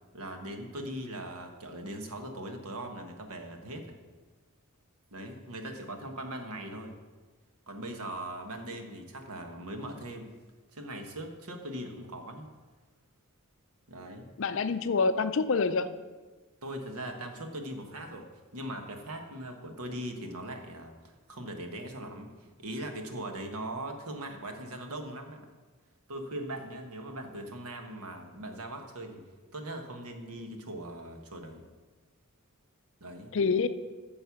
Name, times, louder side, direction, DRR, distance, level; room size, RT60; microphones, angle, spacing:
voice 1, 0.1-4.0 5.1-7.0 7.7-10.3 10.7-12.5 13.9-14.3 16.6-25.5 26.1-29.2 29.5-31.6 33.0-33.3, right 1 dB, 90° right, 4 dB, 1.3 m, -40 dB
voice 2, 14.4-15.9 33.3-33.7, left 4 dB, 60° left, 12 dB, 0.5 m, -26 dB
9.3 x 5.5 x 7.1 m, 1.3 s
head